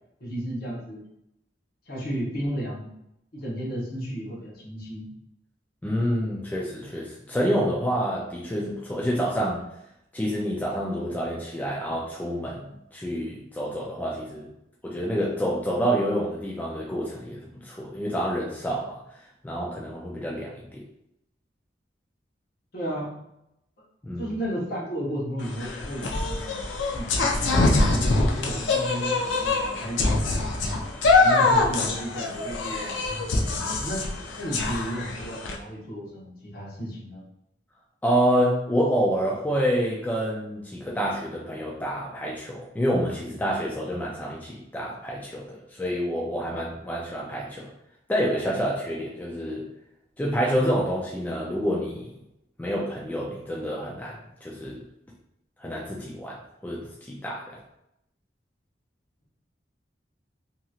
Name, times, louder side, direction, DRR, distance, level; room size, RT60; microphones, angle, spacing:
voice 1, 0.2-1.0 1.9-2.9 3.3-5.1 22.7-23.1 24.2-26.7 26.9-30.7 31.2-37.2, equal, 55° left, -5 dB, 1.0 m, -34 dB
voice 2, 5.8-9.7 10.1-14.5 14.8-19.0 19.4-20.8 24.0-24.3 38.0-47.7 48.1-49.7 50.2-52.1 52.6-54.8 55.6-57.6, equal, 10° left, -4 dB, 0.3 m, -28 dB
sound 1, 25.4-35.6, left 3 dB, 90° left, 0.5 m, -24 dB
2.9 x 2.7 x 2.4 m, 0.82 s
head